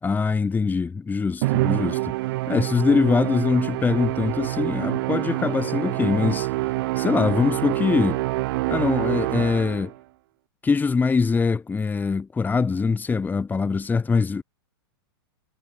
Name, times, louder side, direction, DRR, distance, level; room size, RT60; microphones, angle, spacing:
voice 1, 0.0-2.1 2.5-8.2 8.7-9.9 10.6-14.4, left 4 dB, 15° left, 2.3 m, -23 dB
Musical instrument, 1.4-10.0, right 20 dB, 60° right, 0.8 m, -26 dB
hypercardioid pair, 115°, 13 cm